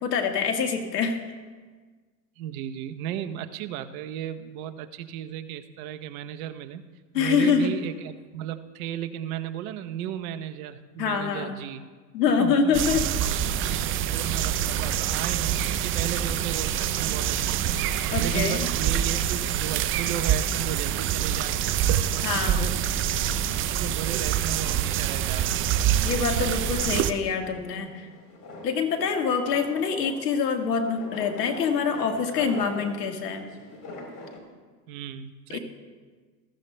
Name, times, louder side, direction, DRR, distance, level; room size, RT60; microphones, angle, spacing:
voice 1, 0.0-1.2 7.1-7.7 11.0-11.5 12.1-13.0 18.1-18.7 22.2-22.7 26.0-28.1 28.6-33.4 35.5-35.6, left 6 dB, 80° left, 5 dB, 1.7 m, -25 dB
voice 2, 2.4-6.8 7.1-11.8 12.3-12.8 13.2-13.3 13.6-21.9 22.2-23.0 23.7-25.7 34.9-35.6, right 10 dB, 60° right, 11 dB, 0.9 m, -35 dB
sound 1, 12.7-27.1, right 10 dB, 25° right, 0.5 m, -26 dB
sound 2, 27.5-34.4, left 1 dB, 40° left, 3.6 m, -41 dB
19.5 x 14.5 x 2.2 m, 1.4 s
hypercardioid pair, 100°, 48 cm